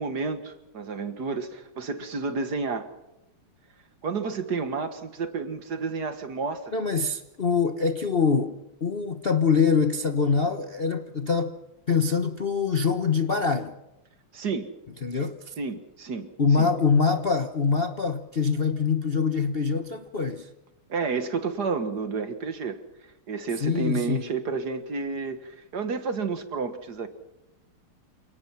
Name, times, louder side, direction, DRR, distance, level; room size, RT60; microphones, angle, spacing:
voice 1, 0.0-2.9 4.0-6.7 14.3-14.7 15.6-16.7 20.9-22.8 23.3-27.1, right 4 dB, 50° right, 2.0 m, -30 dB
voice 2, 6.7-8.6 8.8-11.5 11.9-13.7 15.0-15.5 16.4-20.5 23.6-24.2, left 5 dB, 40° left, 0.9 m, -24 dB
28.5 x 18.0 x 5.8 m
omnidirectional pair, 2.3 m